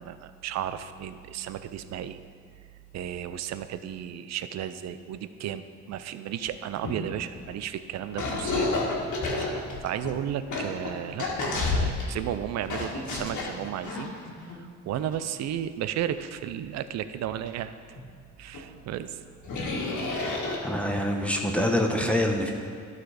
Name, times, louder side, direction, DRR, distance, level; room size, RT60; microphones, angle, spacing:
voice 1, 0.0-2.2 2.9-8.7 9.4-14.1 14.5-17.7 18.4-19.2, right 10 dB, 60° right, 12 dB, 0.5 m, -34 dB
sound 1, 6.5-6.6 6.8-7.6 8.2-12.2 12.7-14.6 14.9-15.1 17.5-17.6 18.0-18.1 18.5-18.6 19.4-21.0, left 3 dB, 75° left, 1.6 m, -30 dB
voice 2, 20.6-22.5, left 1 dB, 5° left, 1 dB, 0.8 m, -25 dB
12.0 x 4.1 x 4.9 m, 2.3 s
cardioid pair, 90°, 30 cm